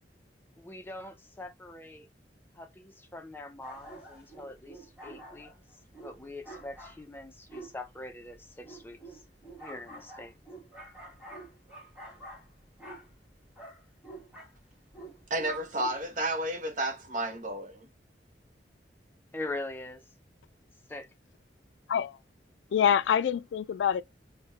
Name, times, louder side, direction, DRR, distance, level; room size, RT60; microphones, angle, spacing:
voice 1, 0.6-2.1 2.5-5.5 6.0-9.2 9.6-10.4 19.3-20.0 20.9-21.1, left 2 dB, 10° left, 0.5 m, -42 dB
sound 1, 3.6-16.2, right 2 dB, 5° right, 1.1 m, -48 dB
voice 2, 15.3-17.9, right 1 dB, 45° right, 0.7 m, -32 dB
voice 3, 22.7-24.0, left 8 dB, 85° left, 0.3 m, -25 dB
3.6 x 2.1 x 3.1 m
head